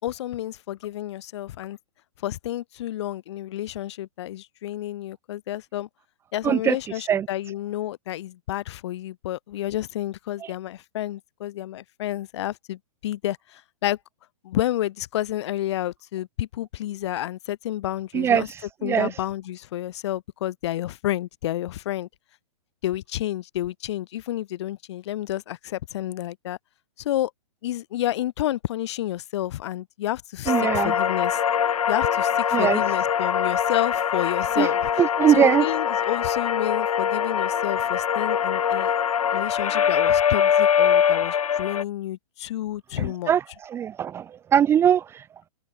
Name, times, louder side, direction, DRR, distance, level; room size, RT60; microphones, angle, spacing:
voice 1, 0.0-1.8 2.2-5.9 6.3-14.0 14.4-18.5 18.8-22.1 22.8-26.6 27.0-27.3 27.6-31.4 31.9-34.8 35.3-38.9 39.3-43.3, left 13 dB, 50° left, 5.4 m, -30 dB
voice 2, 6.4-6.8 7.1-7.3 18.1-18.4 18.8-19.1 30.5-30.9 32.5-32.8 34.6-34.7 35.0-35.6 43.0-45.2, right 9 dB, 15° right, 0.9 m, -21 dB
sound 1, 30.5-41.8, left 8 dB, 85° left, 1.3 m, -23 dB
open air
hypercardioid pair, 150°, 18 cm